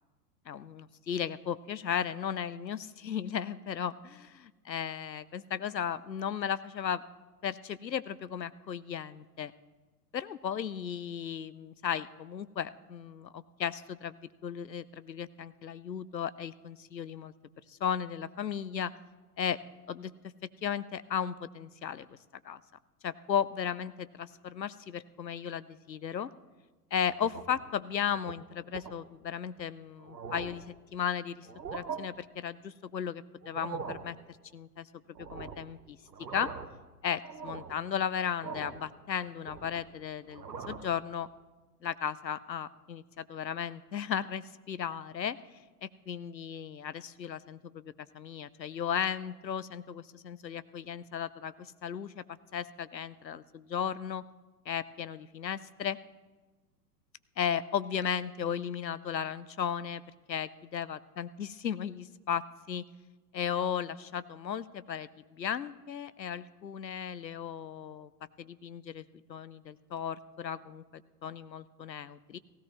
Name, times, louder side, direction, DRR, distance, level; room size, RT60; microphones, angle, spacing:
voice 1, 0.5-7.0 7.4-9.5 10.1-17.3 17.7-18.9 19.4-19.6 19.9-20.1 20.6-22.2 22.4-22.6 23.0-26.3 26.9-34.2 34.5-34.9 35.2-36.0 36.3-36.5 37.0-41.3 41.8-45.4 45.8-52.2 52.5-54.2 54.7-56.0 57.4-60.0 60.3-62.9 63.3-68.1 68.4-72.4, left 8 dB, 90° left, 16 dB, 0.6 m, -35 dB
sound 1, 27.1-27.7 28.1-28.3 28.7-29.0 29.6-29.7 30.0-30.7 31.4-32.0 33.4-34.1 35.2-35.7 36.1-36.8 37.2-37.8 38.4-38.9 39.2-39.9 40.3-40.9, right 6 dB, 80° right, 1.0 m, -42 dB
16.5 x 16.0 x 3.1 m, 1.3 s
figure-of-eight pair, 100°, 49 cm